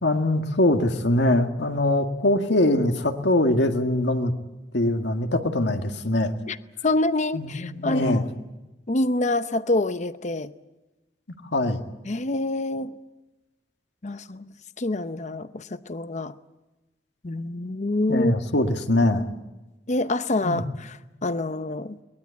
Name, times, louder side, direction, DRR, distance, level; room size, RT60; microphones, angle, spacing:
voice 1, 0.0-4.3 4.7-6.3 7.3-8.2 11.5-11.8 18.1-19.3 20.4-20.6, left 1 dB, 75° left, 1.9 m, -22 dB
voice 2, 6.8-8.2 8.9-10.5 12.1-13.0 14.0-14.5 14.8-16.3 17.2-18.3 19.9-22.0, left 2 dB, 40° left, 0.8 m, -26 dB
23.0 x 20.0 x 8.3 m
head